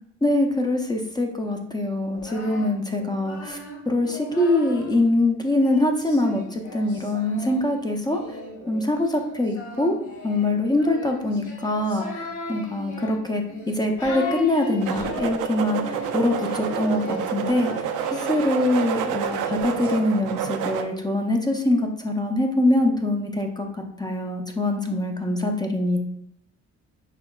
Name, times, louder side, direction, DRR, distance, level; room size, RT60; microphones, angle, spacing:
voice 1, 0.2-3.6 3.9-8.4 8.7-10.0 10.2-26.0, left 1 dB, 15° left, 3 dB, 0.5 m, -24 dB
Singing, 2.0-5.0 5.6-20.1, left 2 dB, 80° left, 1.6 m, -37 dB
sound 1, 14.8-20.8, right 8 dB, 80° right, 0.5 m, -29 dB
5.9 x 3.4 x 2.3 m, 0.81 s
cardioid pair, 90°, 30 cm